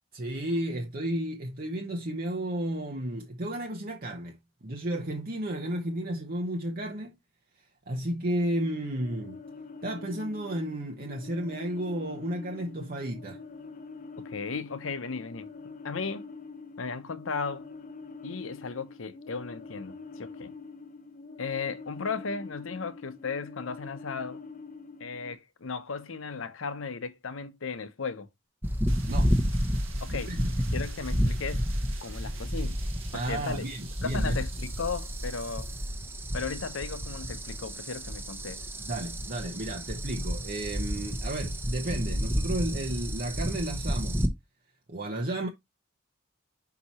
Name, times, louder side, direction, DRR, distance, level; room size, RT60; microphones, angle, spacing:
voice 1, 0.1-4.4 4.6-7.1 7.9-9.4 9.8-13.4 29.1-29.3 30.1-30.5 33.1-34.4 38.8-44.2 44.9-45.5, right 1 dB, 45° right, 0.9 m, -33 dB
sound 1, 8.6-25.3, left 4 dB, 40° left, 0.6 m, -45 dB
voice 2, 14.2-15.5 15.8-16.3 16.8-17.7 18.2-20.5 21.4-24.4 25.0-28.3 30.0-31.7 32.0-32.8 33.1-33.7 34.0-35.7 36.3-38.7, left 5 dB, 80° left, 0.8 m, -36 dB
sound 2, 28.6-44.3, equal, 10° right, 0.9 m, -31 dB
sound 3, 28.9-36.1, right 8 dB, 80° right, 1.6 m, -50 dB
5.8 x 4.8 x 4.1 m
head